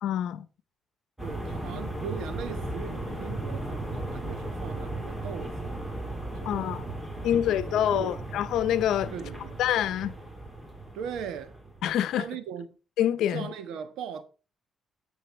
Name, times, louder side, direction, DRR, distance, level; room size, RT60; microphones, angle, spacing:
voice 1, 0.0-0.5 6.4-6.8 7.2-9.1 9.6-10.1 11.8-12.3 13.0-13.5, left 11 dB, 80° left, 0.8 m, -26 dB
sound 1, 1.2-12.1, right 1 dB, 10° right, 3.4 m, -36 dB
voice 2, 1.2-5.8 6.4-6.8 7.1-8.4 9.1-9.6 10.9-11.5 12.1-12.7 13.3-14.2, right 7 dB, 85° right, 1.4 m, -39 dB
12.0 x 7.0 x 4.5 m
cardioid pair, 90°, 0 cm